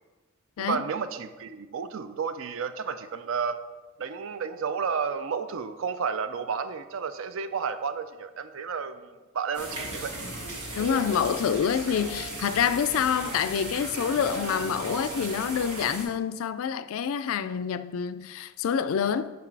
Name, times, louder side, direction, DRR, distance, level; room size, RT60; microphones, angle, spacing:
voice 1, 0.6-3.6 4.0-10.1, right 6 dB, 60° right, 0.4 m, -32 dB
sound 1, 9.5-16.0, right 1 dB, 90° right, 1.8 m, -36 dB
voice 2, 10.8-19.3, left 7 dB, 70° left, 0.3 m, -27 dB
5.9 x 4.7 x 4.6 m
head